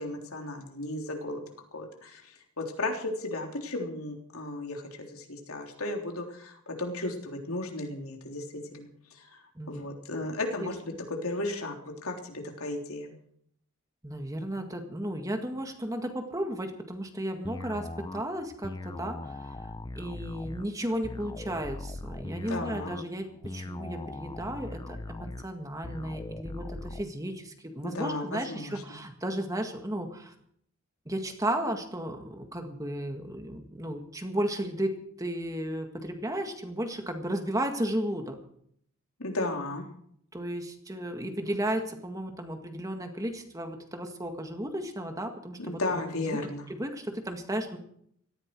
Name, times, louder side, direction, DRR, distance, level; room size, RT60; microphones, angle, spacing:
voice 1, 0.0-1.4 1.7-8.4 8.7-8.9 9.7-10.9 11.2-11.7 12.0-13.1 22.5-22.9 27.8-28.7 39.2-39.8 45.6-46.7, left 2 dB, 80° left, 2 dB, 3.5 m, -34 dB
voice 2, 9.5-9.9 10.6-10.7 14.0-30.3 31.0-34.9 35.2-38.4 40.3-46.4 46.7-47.8, right 1 dB, 15° right, 5 dB, 1.8 m, -34 dB
sound 1, 17.4-27.0, left 2 dB, 20° left, 0.5 m, -40 dB
18.0 x 14.5 x 4.7 m, 0.67 s
head